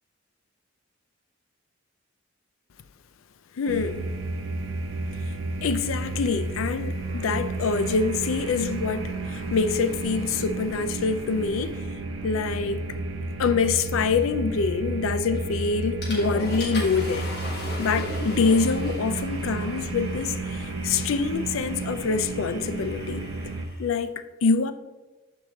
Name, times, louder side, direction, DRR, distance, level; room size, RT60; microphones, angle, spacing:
voice 1, 3.6-4.1 5.6-11.9 12.2-12.8 13.4-17.3 17.8-23.3 23.8-24.7, left 4 dB, 75° left, 0.4 m, -25 dB
sound 1, 3.7-23.6, right 2 dB, 80° right, 0.7 m, -32 dB
Water / Toilet flush, 15.3-15.6 16.0-23.9, left 1 dB, 50° left, 1.9 m, -39 dB
6.9 x 4.8 x 3.7 m
head